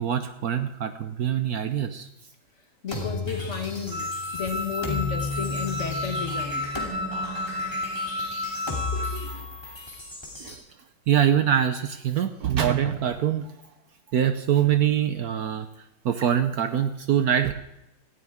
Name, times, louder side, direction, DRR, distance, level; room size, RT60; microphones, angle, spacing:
voice 1, 0.0-2.1 8.9-9.4 10.4-10.6 11.1-13.5 14.1-15.7 16.0-17.5, right 9 dB, 65° right, 9 dB, 1.1 m, -24 dB
voice 2, 2.8-6.7, left 6 dB, 45° left, 6 dB, 1.6 m, -32 dB
sound 1, 2.9-10.6, left 3 dB, 15° left, 2.6 m, -34 dB
Wind instrument woodwind instrument, 3.9-9.3, left 2 dB, 5° right, 1.2 m, -32 dB
18.5 x 14.0 x 3.6 m, 0.90 s
omnidirectional pair, 2.0 m